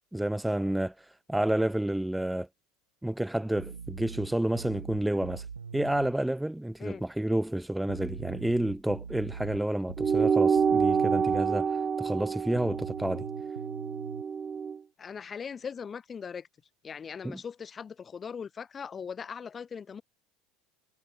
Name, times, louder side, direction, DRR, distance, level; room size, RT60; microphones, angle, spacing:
voice 1, 0.1-0.9 1.3-2.5 3.0-5.4 5.7-13.3 17.2-17.4, right 1 dB, 5° right, 3.8 m, -30 dB
sound 1, 3.6-6.1 7.9-11.5 12.6-14.2, right 6 dB, 80° right, 6.6 m, -42 dB
sound 2, 10.0-14.8, right 6 dB, 25° right, 3.1 m, -27 dB
voice 2, 15.0-16.5 16.8-20.0, left 6 dB, 25° left, 5.7 m, -40 dB
figure-of-eight pair, 75°, 0 cm